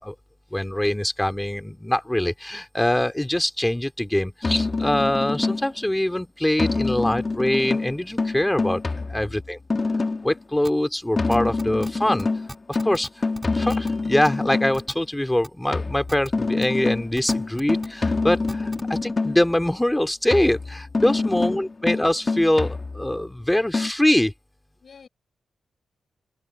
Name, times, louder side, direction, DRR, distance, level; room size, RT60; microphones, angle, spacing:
voice 1, 0.5-8.8 9.1-9.6 10.2-12.3 12.7-13.3 13.5-18.6 19.0-24.3, left 1 dB, 10° left, 2.9 m, -23 dB
sound 1, 4.4-5.8 6.6-10.4 11.2-14.8 15.7-19.5 20.3-23.3 23.7-23.9, left 3 dB, 40° left, 2.2 m, -26 dB
voice 2, 8.9-9.3 21.0-21.6 24.8-25.1, left 6 dB, 60° left, 4.4 m, -49 dB
sound 2, 10.6-10.7 11.3-11.9 12.2-12.3 12.5-13.1 13.3-13.9 14.2-14.3 14.7-14.9 15.4-15.5 16.1-16.3 16.6-16.7 17.2-17.9 18.5-18.8, right 1 dB, 15° right, 4.0 m, -37 dB
open air
cardioid pair, 55°, 0 cm